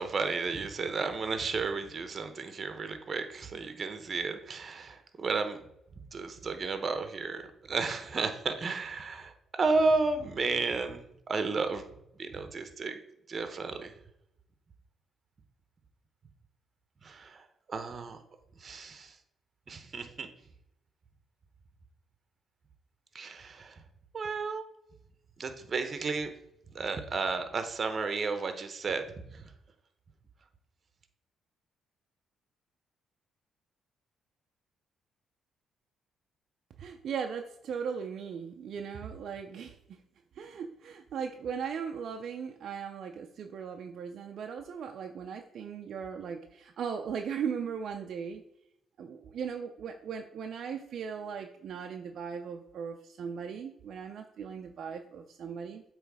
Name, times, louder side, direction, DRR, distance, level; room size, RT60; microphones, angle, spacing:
voice 1, 0.0-5.6 6.1-7.4 7.7-11.8 12.2-13.0 13.3-13.9 17.0-17.4 17.7-18.2 18.6-19.1 19.7-20.3 23.1-23.7 24.1-24.6 25.4-26.3 26.7-29.1 29.3-29.4, right 4 dB, 40° right, 8 dB, 0.9 m, -32 dB
voice 2, 36.8-40.0 40.4-48.4 49.0-55.8, right 7 dB, 65° right, 4 dB, 0.5 m, -38 dB
7.9 x 3.2 x 4.8 m, 0.79 s
cardioid pair, 90°, 0 cm